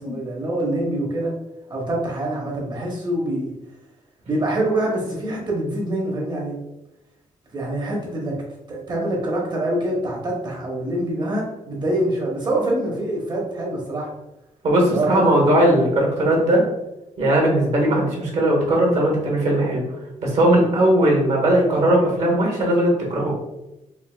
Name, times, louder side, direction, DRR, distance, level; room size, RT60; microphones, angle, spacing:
voice 1, 0.0-1.3 1.7-3.5 4.3-6.6 7.5-8.4 8.7-14.1 14.9-15.4, right 1 dB, 30° right, -2 dB, 0.9 m, -25 dB
voice 2, 14.6-16.6 17.2-19.8 20.2-23.3, right 1 dB, 55° right, -1 dB, 1.2 m, -18 dB
4.6 x 2.5 x 2.3 m, 0.93 s
wide cardioid pair, 180°, 14 cm